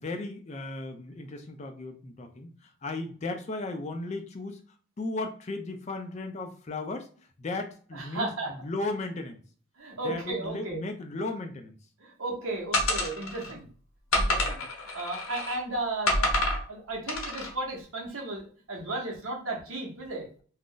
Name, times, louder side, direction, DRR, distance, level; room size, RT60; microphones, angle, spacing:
voice 1, 0.0-2.5 2.8-4.6 5.0-7.1 7.4-9.4 10.0-11.8 13.5-13.6, left 2 dB, 30° left, 5 dB, 0.4 m, -35 dB
voice 2, 7.9-8.5 9.8-10.8 12.0-13.7 14.1-14.7 14.9-16.4 16.7-20.3, right 2 dB, 75° right, -1 dB, 0.9 m, -34 dB
sound 1, 12.7-13.5 14.1-15.6 16.1-16.6 17.1-17.5, left 1 dB, 75° left, 0.8 m, -28 dB
2.5 x 2.0 x 3.7 m, 0.44 s
head